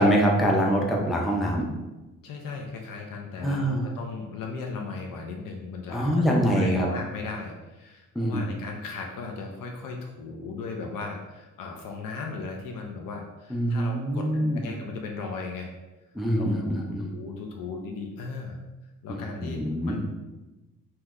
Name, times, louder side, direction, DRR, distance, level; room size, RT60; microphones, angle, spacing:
voice 1, 0.0-1.7 3.4-3.9 5.9-6.9 8.2-8.5 13.5-14.6 16.2-17.1 19.1-20.0, equal, ahead, -1 dB, 0.4 m, -24 dB
voice 2, 2.2-15.7 16.3-16.7 17.1-18.6 19.0-20.0, left 4 dB, 80° left, 2 dB, 0.5 m, -37 dB
2.9 x 2.1 x 3.5 m, 1.1 s
cardioid pair, 110°, 33 cm